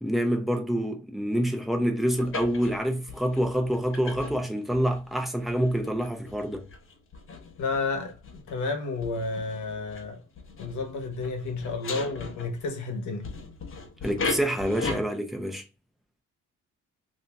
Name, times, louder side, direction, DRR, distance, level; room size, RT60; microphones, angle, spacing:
voice 1, 0.0-6.7 14.0-15.6, equal, ahead, 0.7 m, -27 dB
sound 1, 2.2-12.8 13.2-15.0, left 3 dB, 45° left, 0.9 m, -38 dB
voice 2, 7.6-8.2 8.5-10.2 10.6-13.3, left 3 dB, 75° left, 1.1 m, -31 dB
2.8 x 2.7 x 3.3 m
cardioid pair, 90°, 30 cm